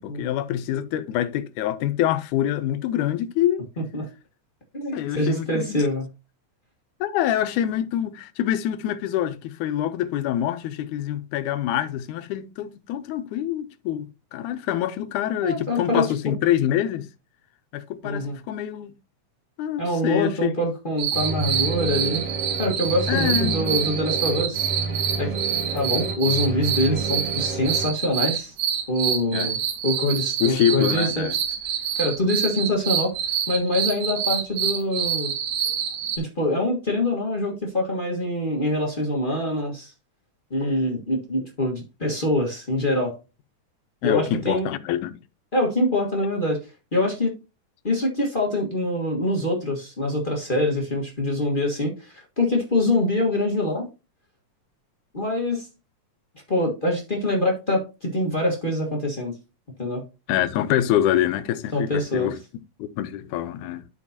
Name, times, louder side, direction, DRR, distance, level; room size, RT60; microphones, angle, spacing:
voice 1, 0.0-3.7 4.9-5.8 7.0-17.1 17.7-18.9 19.6-20.5 23.1-23.8 29.3-29.5 30.4-31.3 44.0-45.2 60.3-62.4 62.8-63.8, left 11 dB, 85° left, 2.1 m, -25 dB
voice 2, 3.8-4.1 4.7-6.0 15.4-16.3 18.0-18.4 19.8-22.2 22.6-24.7 25.2-25.3 25.7-28.5 28.9-31.3 32.0-33.1 33.5-35.3 36.2-39.9 40.5-43.1 44.0-44.7 45.5-46.6 46.9-47.4 47.8-53.9 55.1-55.7 56.5-59.3 59.8-60.0 61.7-62.3, left 1 dB, 50° left, 0.6 m, -24 dB
sound 1, 21.0-36.2, right 8 dB, 85° right, 2.6 m, -27 dB
sound 2, 21.1-27.8, right 3 dB, 40° right, 2.1 m, -30 dB
12.0 x 4.7 x 2.8 m
omnidirectional pair, 3.5 m